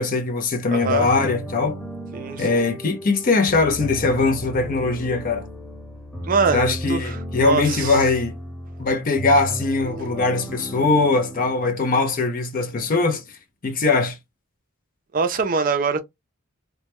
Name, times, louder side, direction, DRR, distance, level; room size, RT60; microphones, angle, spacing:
voice 1, 0.0-1.8 2.4-5.5 6.5-8.4 8.8-13.2 13.6-14.2, left 3 dB, 40° left, 0.4 m, -21 dB
voice 2, 0.7-1.1 2.1-2.6 6.2-8.0 15.1-16.0, right 5 dB, 40° right, 0.4 m, -24 dB
sound 1, 0.8-12.5, equal, 10° left, 1.0 m, -34 dB
2.1 x 2.0 x 2.9 m
head